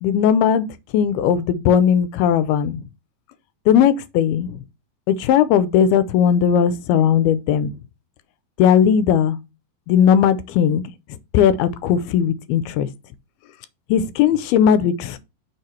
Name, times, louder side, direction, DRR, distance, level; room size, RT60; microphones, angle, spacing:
voice 1, 0.0-0.7 0.9-2.8 3.7-4.6 5.1-7.8 8.6-9.4 9.9-10.8 11.3-12.9 13.9-15.2, left 8 dB, 85° left, 2.7 m, -17 dB
6.1 x 4.9 x 4.5 m
omnidirectional pair, 4.3 m